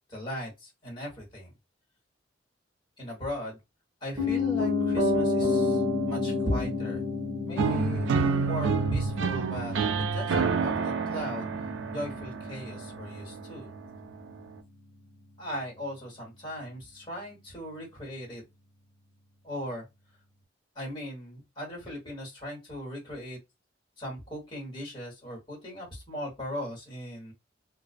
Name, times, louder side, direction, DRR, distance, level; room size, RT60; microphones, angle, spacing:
voice 1, 0.1-1.5 3.0-3.6 4.0-7.0 7.4-9.7 10.1-11.5 11.9-13.7 15.4-18.4 19.4-19.8 20.7-23.4 24.0-27.3, equal, 25° left, 1.3 m, -38 dB
Piano, 4.2-14.2 14.5-14.6, left 3 dB, 20° right, 0.9 m, -31 dB
sound 1, 7.6-13.5, right 5 dB, 75° right, 0.4 m, -28 dB
2.3 x 2.3 x 2.4 m
head